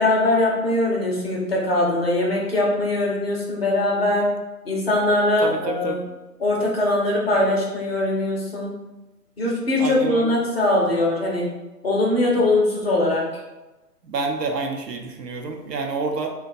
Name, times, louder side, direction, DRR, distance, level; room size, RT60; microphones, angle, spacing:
voice 1, 0.0-4.3 4.6-6.0 6.4-8.7 9.4-11.5 11.8-13.3, left 2 dB, 40° left, -2 dB, 0.6 m, -21 dB
voice 2, 5.4-6.0 9.8-10.4 14.0-16.3, right 4 dB, 80° right, 3 dB, 0.6 m, -28 dB
2.4 x 2.1 x 2.5 m, 1.1 s
hypercardioid pair, 155°, 49 cm